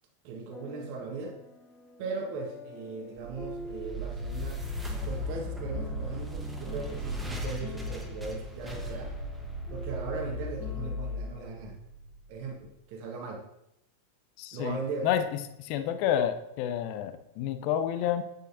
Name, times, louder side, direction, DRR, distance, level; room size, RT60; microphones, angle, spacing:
voice 1, 0.2-1.4 2.0-4.6 5.0-9.1 9.7-11.8 12.3-13.4 14.5-15.1, right 4 dB, 45° right, 2 dB, 1.5 m, -38 dB
sound 1, 0.5-11.5, left 3 dB, 20° left, 1.1 m, -48 dB
sound 2, 3.2-12.3, left 1 dB, 5° right, 1.2 m, -36 dB
voice 2, 14.4-15.2 15.6-18.2, left 10 dB, 45° left, 10 dB, 0.6 m, -29 dB
8.4 x 7.9 x 2.8 m, 0.84 s
figure-of-eight pair, 90°, 0 cm